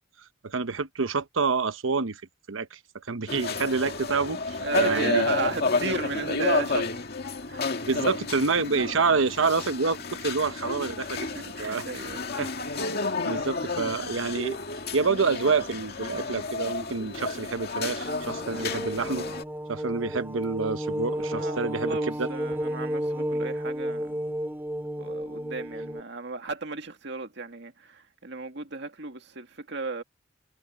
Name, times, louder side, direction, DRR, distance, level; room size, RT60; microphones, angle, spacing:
voice 1, 0.4-2.2 2.5-2.8 3.1-5.5 7.8-11.3 11.6-11.9 12.4-12.5 13.2-14.6 14.9-19.3 19.7-22.3, right 4 dB, 90° right, 1.0 m, -27 dB
sound 1, 3.3-19.4, left 3 dB, 55° left, 2.2 m, -31 dB
voice 2, 4.6-7.1 7.5-7.9 11.1-12.2 21.3-24.1 25.0-30.0, right 3 dB, 60° right, 2.1 m, -34 dB
sound 2, 18.0-26.0, equal, 10° right, 5.0 m, -32 dB
head